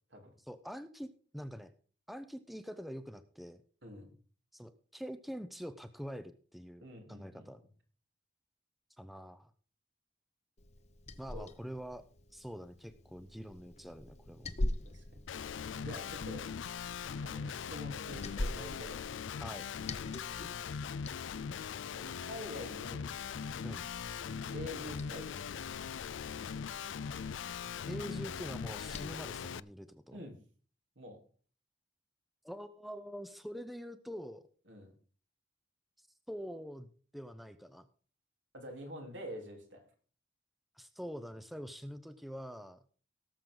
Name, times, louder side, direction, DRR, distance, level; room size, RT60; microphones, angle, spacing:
voice 1, 0.4-1.7 2.1-3.6 4.5-7.6 9.0-9.5 11.2-12.0 12.3-14.5 19.4-19.7 23.6-23.9 27.9-30.2 32.4-34.4 36.3-37.9 40.8-42.8, equal, ahead, 11 dB, 0.6 m, -45 dB
voice 2, 3.8-4.2 6.8-7.5 11.3-11.5 14.9-15.0 15.8-16.4 17.2-19.1 21.9-23.2 24.5-25.5 30.1-30.4 31.0-31.2 34.7-34.9 38.5-39.8, left 1 dB, 80° right, 3 dB, 3.6 m, -46 dB
Liquid, 10.6-29.2, left 1 dB, 35° left, 0.8 m, -45 dB
Guitar, 15.3-29.6, left 7 dB, 85° left, 0.4 m, -40 dB
18.0 x 7.6 x 3.9 m, 0.42 s
head